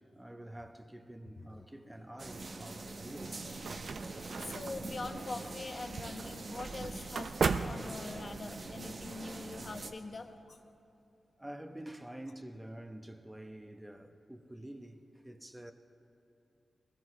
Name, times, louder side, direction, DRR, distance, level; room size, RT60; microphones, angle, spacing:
voice 1, 0.0-3.5 9.1-9.4 11.4-15.7, right 1 dB, 10° right, 0.9 m, -48 dB
sound 1, 2.2-9.9, right 3 dB, 50° right, 0.9 m, -44 dB
sound 2, 3.2-8.5, right 5 dB, 70° right, 0.5 m, -38 dB
voice 2, 4.4-10.6, left 3 dB, 45° left, 0.9 m, -43 dB
20.5 x 17.5 x 3.2 m
cardioid pair, 65°, 0 cm